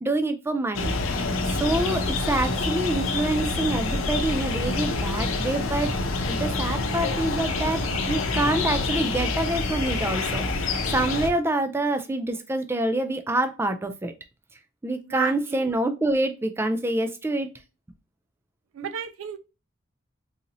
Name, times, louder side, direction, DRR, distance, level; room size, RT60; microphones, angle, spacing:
voice 1, 0.0-6.0 6.2-14.1 14.8-17.5, right 2 dB, 10° right, 0.3 m, -27 dB
sound 1, 0.7-11.3, left 3 dB, 85° left, 0.7 m, -27 dB
sound 2, 3.7-7.8, left 1 dB, 30° left, 0.8 m, -39 dB
voice 2, 15.1-15.7 18.7-19.4, right 8 dB, 85° right, 0.4 m, -33 dB
3.9 x 2.6 x 2.9 m
head